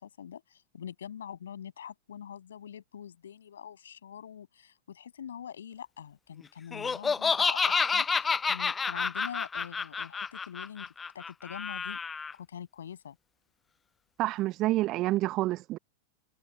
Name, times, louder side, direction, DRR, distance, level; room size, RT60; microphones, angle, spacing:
voice 1, 0.0-12.0 12.3-13.2, left 8 dB, 65° left, 7.9 m, -44 dB
Laughter, 6.7-12.3, left 5 dB, 15° left, 0.4 m, -29 dB
voice 2, 14.2-15.8, right 17 dB, 35° right, 1.0 m, -28 dB
figure-of-eight pair, 90°, 0 cm